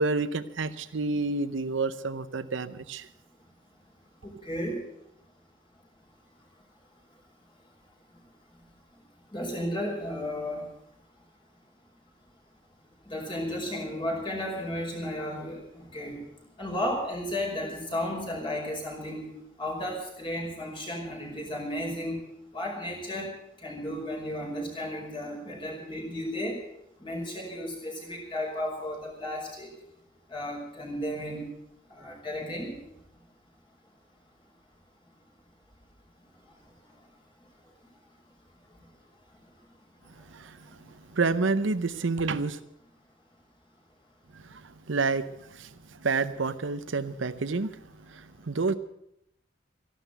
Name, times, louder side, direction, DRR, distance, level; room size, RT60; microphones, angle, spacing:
voice 1, 0.0-3.1 40.2-42.6 44.3-48.8, right 3 dB, 70° right, 12 dB, 0.7 m, -29 dB
voice 2, 4.4-4.8 9.3-10.6 13.1-16.2 16.6-19.2 19.6-22.2 22.5-23.3 23.6-26.6 27.0-29.7 30.3-31.5 32.0-32.7, left 1 dB, 25° left, -1 dB, 5.2 m, -33 dB
14.5 x 12.0 x 8.1 m, 0.79 s
head